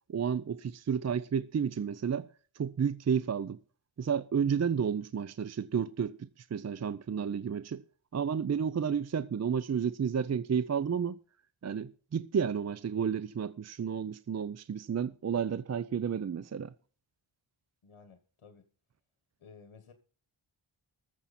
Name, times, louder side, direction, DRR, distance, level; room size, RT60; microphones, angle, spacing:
voice 1, 0.1-2.3 2.5-3.6 4.0-7.8 8.1-11.2 11.6-16.7, right 7 dB, 35° right, 0.4 m, -31 dB
voice 2, 17.8-18.7 19.4-19.9, left 5 dB, 75° left, 1.5 m, -55 dB
19.5 x 7.2 x 4.2 m
wide cardioid pair, 75°, 48 cm